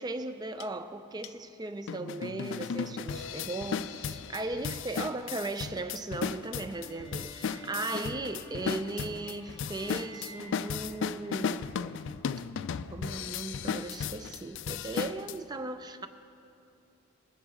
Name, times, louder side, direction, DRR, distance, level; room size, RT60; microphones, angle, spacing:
voice 1, 0.0-11.6 12.9-16.1, right 2 dB, 20° right, 10 dB, 0.4 m, -37 dB
sound 1, 0.6-0.7 1.2-1.3 1.9-15.4, left 6 dB, 55° left, 0.3 m, -35 dB
sound 2, 6.7-11.9, equal, 20° left, 0.8 m, -50 dB
20.5 x 9.2 x 3.7 m, 2.6 s
head